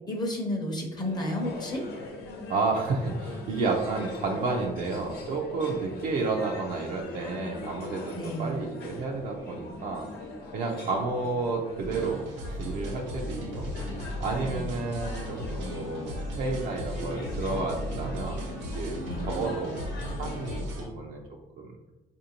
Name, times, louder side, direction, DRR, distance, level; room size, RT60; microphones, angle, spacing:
voice 1, 0.1-1.8 8.2-8.5 14.5-14.6 19.1-19.2, left 1 dB, 25° left, 1 dB, 0.7 m, -31 dB
sound 1, 1.0-20.6, left 2 dB, 70° left, 0.9 m, -42 dB
voice 2, 2.5-10.1 10.5-13.7 14.2-18.4 18.7-19.7 20.0-21.2 21.6-21.8, right 3 dB, 60° right, 0 dB, 0.5 m, -31 dB
sound 2, 11.8-20.9, equal, 90° right, 0.8 m, -35 dB
4.3 x 2.6 x 2.8 m, 1.1 s
cardioid pair, 110°, 17 cm